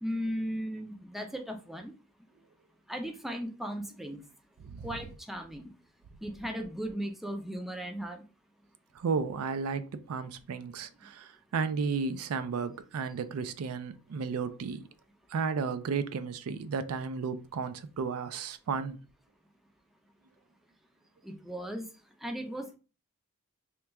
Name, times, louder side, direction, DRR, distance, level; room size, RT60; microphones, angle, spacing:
voice 1, 0.0-1.9 2.9-4.2 4.8-5.7 6.2-8.2 21.2-21.9 22.2-22.8, equal, ahead, 0.4 m, -36 dB
voice 2, 8.9-14.9 15.3-19.0, right 5 dB, 70° right, 0.4 m, -33 dB
3.0 x 2.2 x 3.4 m
head